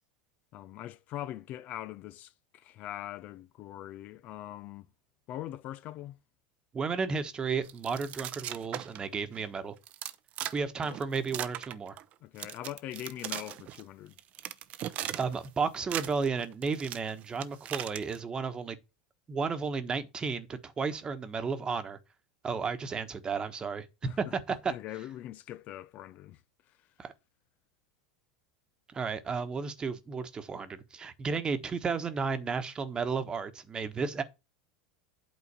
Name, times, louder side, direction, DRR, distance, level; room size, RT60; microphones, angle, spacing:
voice 1, 0.5-4.9 5.3-6.1 10.8-11.0 12.2-14.2 24.0-24.3 24.7-26.4, left 13 dB, 45° left, 0.5 m, -42 dB
voice 2, 6.7-9.7 10.5-12.0 15.1-18.8 19.3-22.0 22.4-23.9 24.2-24.7 27.0-27.1 28.9-34.2, right 5 dB, 25° right, 1.2 m, -33 dB
sound 1, 7.6-9.1 9.3-9.4 9.8-10.6 10.8-12.1 12.4-13.8 14.2-15.5 15.7-18.2, right 12 dB, 45° right, 0.7 m, -38 dB
8.6 x 3.7 x 6.8 m
hypercardioid pair, 90°, 3 cm